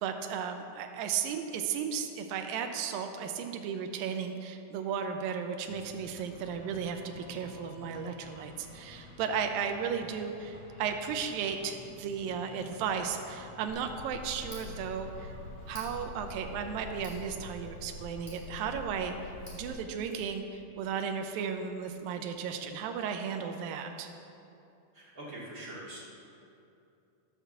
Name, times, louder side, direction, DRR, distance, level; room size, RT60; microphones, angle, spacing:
voice 1, 0.0-15.4 15.7-19.2 19.5-24.1, right 7 dB, 85° right, 5 dB, 2.5 m, -35 dB
sound 1, 5.7-22.8, left 1 dB, 85° left, 4.1 m, -54 dB
Tick, 13.7-19.7, left 1 dB, 20° left, 3.0 m, -45 dB
voice 2, 24.9-26.0, right 1 dB, 30° right, -6 dB, 2.0 m, -43 dB
12.0 x 7.1 x 7.1 m, 2.7 s
omnidirectional pair, 4.0 m